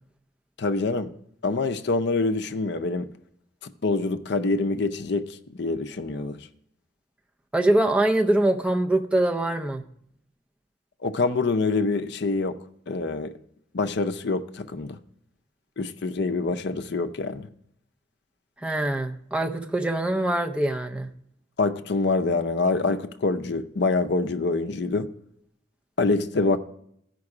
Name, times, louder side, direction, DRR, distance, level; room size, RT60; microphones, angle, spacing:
voice 1, 0.6-1.1 1.4-3.1 3.6-6.5 11.0-12.6 12.9-13.3 13.7-15.0 15.8-17.5 21.6-25.1 26.0-26.6, left 3 dB, 60° left, 0.5 m, -25 dB
voice 2, 7.5-9.8 18.6-21.1, right 1 dB, 5° right, 0.5 m, -23 dB
14.5 x 5.2 x 4.8 m
head